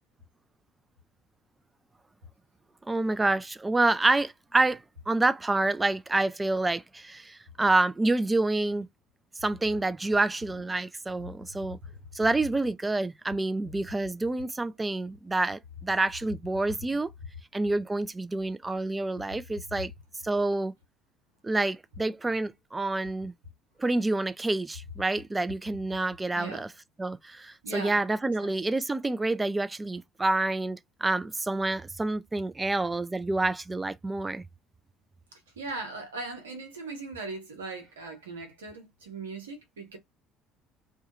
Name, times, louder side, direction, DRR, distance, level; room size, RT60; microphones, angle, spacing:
voice 1, 2.9-8.9 9.4-11.8 12.1-17.1 17.5-19.9 20.2-20.7 21.4-23.3 23.8-26.7 27.0-34.4, right 2 dB, 15° right, 0.3 m, -28 dB
voice 2, 26.3-26.7 27.6-28.7 35.3-40.0, right 3 dB, 80° right, 0.9 m, -40 dB
2.3 x 2.3 x 2.8 m
figure-of-eight pair, 55°, 0 cm